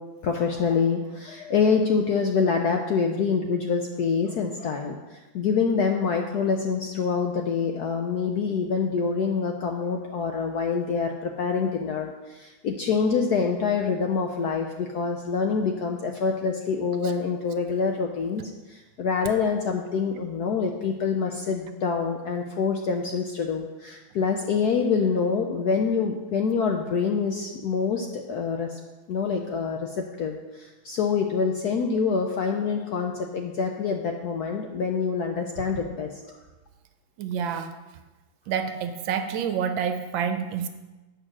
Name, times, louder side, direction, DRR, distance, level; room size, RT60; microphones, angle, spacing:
voice 1, 0.2-28.8 29.1-36.4, left 5 dB, 70° left, 3 dB, 0.9 m, -26 dB
voice 2, 37.2-37.7 38.5-40.7, right 7 dB, 75° right, 8 dB, 1.3 m, -28 dB
8.4 x 5.6 x 6.1 m, 1.2 s
omnidirectional pair, 2.3 m